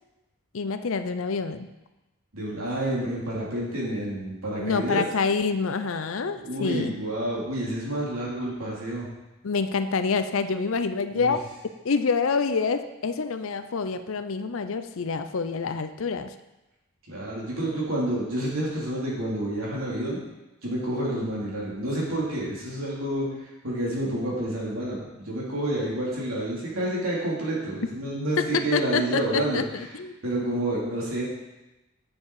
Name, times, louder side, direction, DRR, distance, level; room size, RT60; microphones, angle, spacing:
voice 1, 0.5-1.7 4.5-6.9 9.4-11.5 11.8-16.3 28.4-30.2, left 4 dB, 65° left, 10 dB, 0.5 m, -27 dB
voice 2, 2.3-5.0 6.3-9.0 11.1-11.4 17.1-20.2 20.6-23.3 23.6-29.6 30.2-31.2, right 1 dB, 65° right, -5 dB, 3.3 m, -29 dB
8.7 x 7.2 x 4.8 m, 1.0 s
head